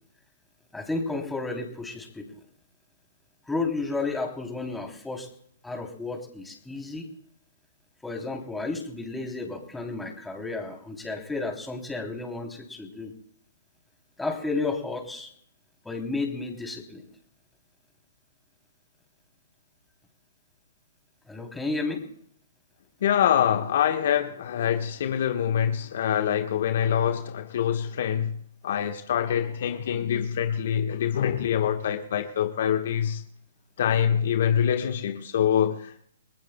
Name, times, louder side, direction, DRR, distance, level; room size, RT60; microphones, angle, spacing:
voice 1, 0.7-2.3 3.5-5.3 5.6-7.1 8.0-13.1 14.2-15.3 15.8-17.1 21.3-22.0, left 3 dB, 5° left, 3.0 m, -32 dB
voice 2, 23.0-28.3 28.6-33.2 33.8-36.1, left 9 dB, 60° left, 1.2 m, -25 dB
29.5 x 20.0 x 2.2 m
hypercardioid pair, 130°, 0 cm